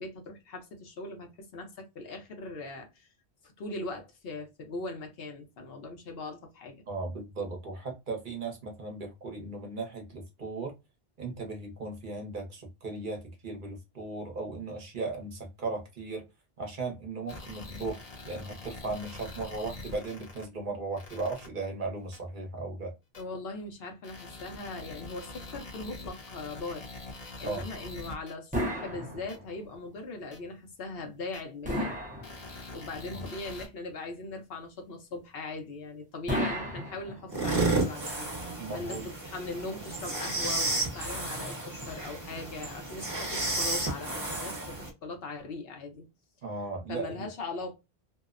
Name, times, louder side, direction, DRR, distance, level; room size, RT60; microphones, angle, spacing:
voice 1, 0.0-3.1 3.4-6.8 23.2-31.9 32.7-46.0 46.9-47.7, left 2 dB, 70° left, 1.0 m, -40 dB
voice 2, 6.9-10.7 11.2-16.3 16.6-22.9 27.4-27.7 33.1-33.2 38.6-39.1 46.4-47.3, right 3 dB, 55° right, 0.9 m, -37 dB
sound 1, 17.3-20.4 21.0-21.5 22.1-22.2 23.1-23.2 24.0-28.3 29.3-29.4 30.3-30.4 31.3-31.4 32.2-33.7, left 2 dB, 40° left, 0.8 m, -44 dB
sound 2, 28.5-29.7 31.6-32.9 36.3-37.6, equal, 10° right, 0.6 m, -33 dB
sound 3, 37.3-44.9, right 2 dB, 25° right, 1.0 m, -32 dB
2.7 x 2.0 x 2.3 m
omnidirectional pair, 1.0 m